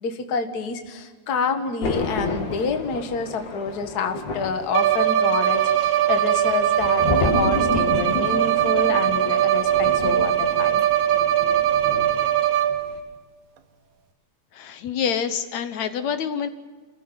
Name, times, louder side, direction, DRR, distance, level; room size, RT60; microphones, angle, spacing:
voice 1, 0.0-10.8, left 5 dB, 40° left, 6 dB, 1.8 m, -28 dB
Thunder, 1.8-12.4 12.7-13.0, left 3 dB, 90° left, 4.2 m, -31 dB
Bowed string instrument, 4.7-13.0, right 11 dB, 75° right, 2.7 m, -21 dB
voice 2, 14.5-16.5, left 7 dB, 75° left, 10 dB, 2.3 m, -27 dB
28.0 x 15.0 x 9.0 m, 1.4 s
omnidirectional pair, 3.3 m